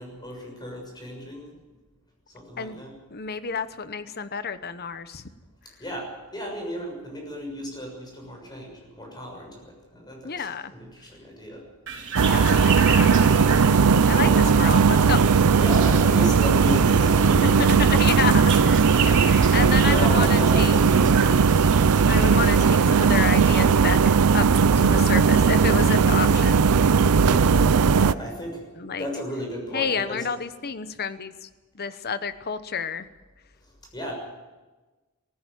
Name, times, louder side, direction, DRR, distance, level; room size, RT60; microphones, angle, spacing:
voice 1, 0.0-1.6 2.3-3.0 5.8-11.6 14.2-14.5 15.6-18.1 19.1-21.7 26.9-28.6 29.0-30.3 33.6-34.1, equal, 20° left, 1 dB, 6.7 m, -34 dB
voice 2, 3.1-5.2 10.2-10.7 12.3-13.1 14.1-15.2 17.4-20.8 22.1-26.6 28.8-29.1 29.7-31.5 31.7-33.1, left 6 dB, 45° left, 12 dB, 1.0 m, -30 dB
sound 1, 11.9-23.6, right 6 dB, 55° right, 3.9 m, -34 dB
sound 2, 12.2-28.1, right 5 dB, 90° right, 0.6 m, -18 dB
19.0 x 15.5 x 9.2 m, 1.2 s
head